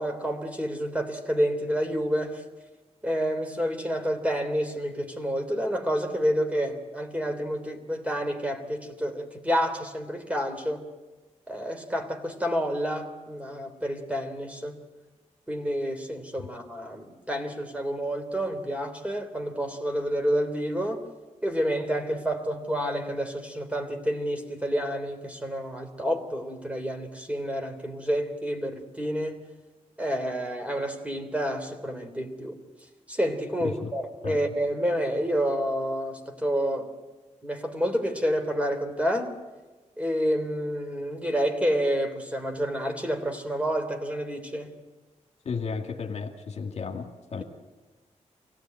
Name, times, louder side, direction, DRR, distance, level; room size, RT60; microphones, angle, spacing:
voice 1, 0.0-2.4 3.0-10.8 11.5-14.7 15.5-21.0 21.4-29.4 30.0-32.6 33.1-36.9 37.4-39.3 40.0-44.7, equal, 10° right, 6 dB, 3.3 m, -29 dB
voice 2, 33.6-33.9 34.2-34.4 45.4-47.4, left 5 dB, 60° left, 4 dB, 2.1 m, -33 dB
25.0 x 17.0 x 9.3 m, 1.2 s
cardioid pair, 95°, 13 cm